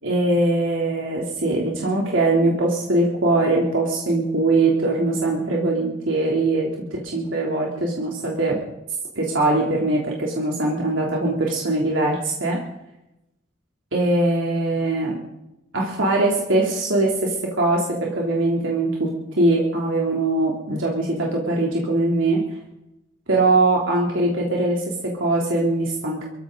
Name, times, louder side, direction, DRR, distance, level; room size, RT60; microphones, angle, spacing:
voice 1, 0.0-8.6 9.1-12.6 13.9-15.2 15.7-22.4 23.3-26.3, right 2 dB, 90° right, -2 dB, 3.0 m, -21 dB
23.5 x 15.0 x 3.9 m, 0.91 s
head